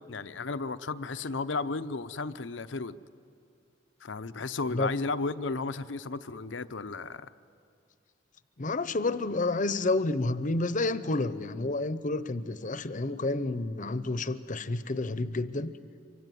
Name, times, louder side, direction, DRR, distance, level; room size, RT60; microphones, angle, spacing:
voice 1, 0.1-3.0 4.0-7.3, left 3 dB, 80° left, 12 dB, 0.8 m, -34 dB
voice 2, 8.6-15.7, left 2 dB, 45° left, 14 dB, 0.8 m, -30 dB
25.5 x 24.0 x 9.3 m, 2.4 s
head